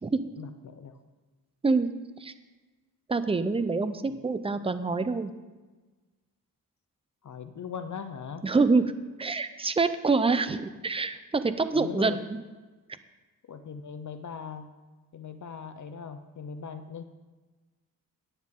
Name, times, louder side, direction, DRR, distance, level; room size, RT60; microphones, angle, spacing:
voice 1, 0.4-1.0 4.1-4.2 7.2-8.5 11.7-12.2 13.5-14.7 15.1-17.0, left 6 dB, 55° left, 9 dB, 0.6 m, -40 dB
voice 2, 3.1-5.3 8.4-8.9 9.2-12.4, right 4 dB, 15° right, 11 dB, 0.5 m, -26 dB
13.5 x 9.5 x 3.7 m, 1.3 s
wide cardioid pair, 130°, 36 cm